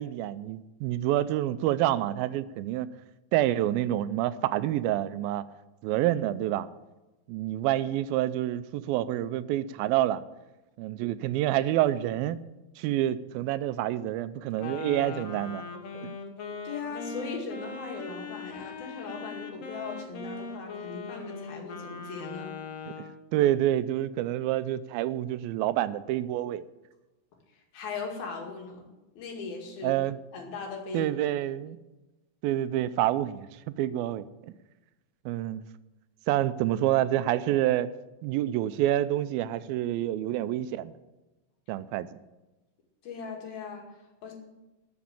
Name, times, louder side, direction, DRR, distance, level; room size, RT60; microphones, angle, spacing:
voice 1, 0.0-2.9 3.3-5.4 5.8-6.7 7.3-10.2 10.8-12.4 12.8-15.6 15.9-16.1 22.9-26.6 29.8-30.2 30.9-31.8 32.4-34.5 35.3-35.6 36.3-37.9 38.2-40.9 41.7-42.1, right 13 dB, 85° right, 14 dB, 2.3 m, -28 dB
Wind instrument woodwind instrument, 14.6-23.2, left 4 dB, 55° left, 1.8 m, -40 dB
voice 2, 16.6-22.6 27.5-28.9 29.2-30.0 30.3-31.1 43.0-44.3, left 4 dB, 75° left, 1 dB, 4.1 m, -39 dB
13.0 x 7.3 x 8.8 m, 1.0 s
omnidirectional pair, 4.3 m